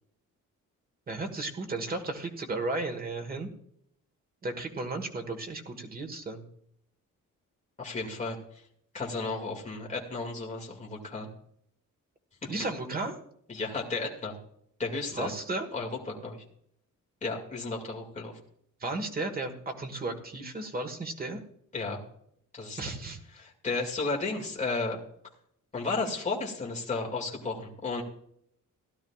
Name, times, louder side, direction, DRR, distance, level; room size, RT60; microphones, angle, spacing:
voice 1, 1.1-3.5 4.4-6.5 12.5-13.2 15.1-15.7 18.8-21.4 22.8-23.2, right 2 dB, 30° right, 5 dB, 1.4 m, -34 dB
voice 2, 7.8-8.6 8.9-11.3 12.4-12.5 13.5-14.4 14.8-15.3 15.7-16.4 17.2-18.4 21.7-22.0 22.5-22.8 23.3-25.0 25.7-28.0, left 3 dB, 20° left, -1 dB, 2.2 m, -33 dB
17.0 x 12.0 x 2.4 m, 0.70 s
wide cardioid pair, 170°, 31 cm